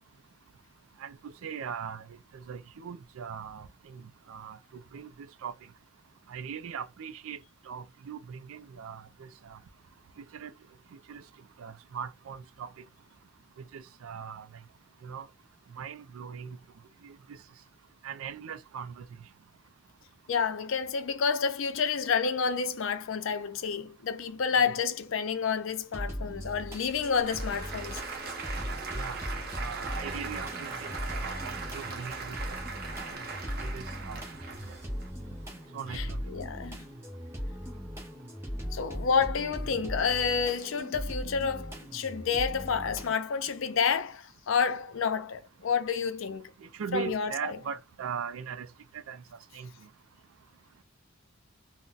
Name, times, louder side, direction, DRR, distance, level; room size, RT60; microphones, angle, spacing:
voice 1, 1.0-2.0 2.3-4.0 4.3-4.6 4.9-5.1 5.4-5.5 6.3-7.4 7.7-9.6 10.3-10.5 11.1-11.2 11.6-12.7 13.7-14.5 15.0-15.3 15.7-16.6 17.0-17.2 18.0-19.0 24.6-24.7 28.9-29.2 29.6-32.4 33.6-34.2 34.7-34.8 35.7-36.2 46.6-48.7 48.9-49.2 49.5-49.7, right 7 dB, 85° right, 0.4 m, -39 dB
voice 2, 20.3-28.0 35.9-36.8 38.7-46.5 46.9-47.6, left 6 dB, 70° left, 0.5 m, -29 dB
sound 1, 25.9-43.1, equal, 10° right, 0.8 m, -39 dB
Applause / Crowd, 26.3-35.1, right 4 dB, 50° right, 0.7 m, -40 dB
3.9 x 2.1 x 2.3 m
head